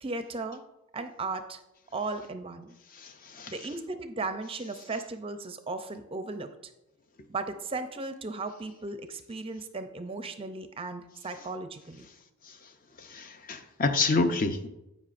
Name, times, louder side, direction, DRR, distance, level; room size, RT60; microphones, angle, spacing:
voice 1, 0.0-0.6 0.9-1.6 1.9-2.7 3.5-6.5 7.3-12.1, right 3 dB, 25° right, 8 dB, 0.5 m, -36 dB
voice 2, 3.0-3.5 13.1-14.7, left 3 dB, 40° left, 8 dB, 0.6 m, -28 dB
16.0 x 5.4 x 2.5 m, 0.93 s
head